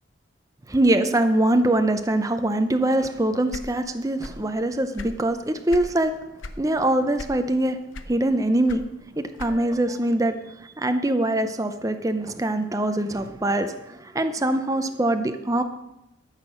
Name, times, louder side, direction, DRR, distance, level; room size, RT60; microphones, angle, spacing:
voice 1, 0.7-6.1 6.6-7.8 8.1-8.9 9.2-10.4 10.8-15.6, right 1 dB, 15° right, 8 dB, 0.6 m, -23 dB
sound 1, 3.5-4.5 4.8-5.9 6.4-6.7 7.1-7.6 7.9-9.8, left 2 dB, 85° left, 0.9 m, -38 dB
13.0 x 6.6 x 6.3 m, 0.91 s
head